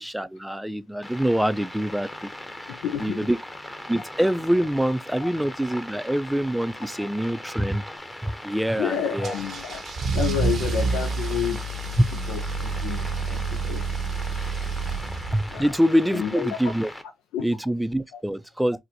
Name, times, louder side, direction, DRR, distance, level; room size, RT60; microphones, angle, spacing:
voice 1, 0.0-2.3 2.6-2.7 3.0-3.4 3.9-7.8 8.2-9.4 15.3-16.9 17.4-18.8, equal, 5° right, 0.4 m, -25 dB
sound 1, 1.0-17.0, left 1 dB, 15° left, 0.8 m, -40 dB
voice 2, 2.7-3.2 5.2-5.3 7.0-7.1 8.8-9.8 10.1-11.6 12.3-13.8 15.5-15.7 16.1-16.6 17.3-17.4 18.1-18.2, left 9 dB, 85° left, 0.3 m, -30 dB
Car / Engine starting / Accelerating revving vroom, 9.2-15.7, right 4 dB, 60° right, 0.7 m, -28 dB
4.1 x 2.1 x 2.6 m
supercardioid pair, 60°, 0 cm